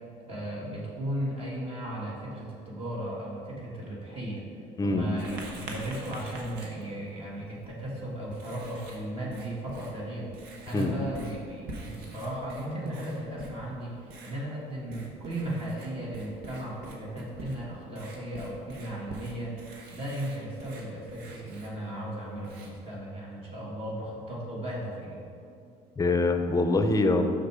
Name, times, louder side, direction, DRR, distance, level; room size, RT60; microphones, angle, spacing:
voice 1, 0.3-4.5 4.8-14.0 14.2-25.2, right 1 dB, 35° right, -4 dB, 1.8 m, -36 dB
Writing, 5.2-23.0, right 2 dB, 75° right, 1.2 m, -47 dB
voice 2, 26.0-27.2, left 2 dB, 20° left, 6 dB, 0.6 m, -24 dB
6.4 x 5.7 x 4.8 m, 2.6 s
cardioid pair, 110°, 17 cm